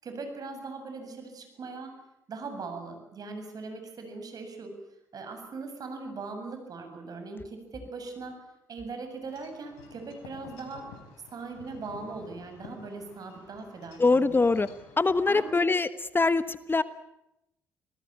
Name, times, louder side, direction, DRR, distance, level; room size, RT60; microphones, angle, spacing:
voice 1, 0.0-2.0 2.3-4.7 5.1-10.9 11.3-14.5 15.2-15.6, right 3 dB, 50° right, 6 dB, 7.4 m, -40 dB
Wind chime / Wind, 9.3-15.6, left 5 dB, 80° left, 4.3 m, -51 dB
voice 2, 14.0-14.7 15.0-15.9 16.1-16.8, left 3 dB, 25° left, 14 dB, 1.2 m, -23 dB
27.0 x 19.5 x 8.9 m, 0.85 s
hypercardioid pair, 50°, 8 cm